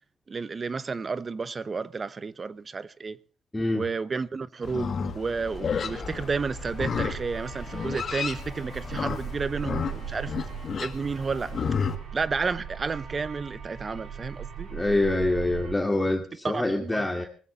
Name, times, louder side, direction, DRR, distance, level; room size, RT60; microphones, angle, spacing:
voice 1, 0.3-3.2 3.7-10.3 10.8-11.5 12.1-14.7 16.4-17.0, right 4 dB, 35° right, 0.9 m, -31 dB
voice 2, 3.5-3.9 14.7-17.3, left 2 dB, 10° left, 2.4 m, -25 dB
Livestock farm animals working animals, 4.6-11.9, left 6 dB, 50° left, 2.2 m, -32 dB
sound 1, 5.1-15.7, right 8 dB, 70° right, 4.5 m, -40 dB
20.5 x 15.0 x 4.1 m
cardioid pair, 90°, 0 cm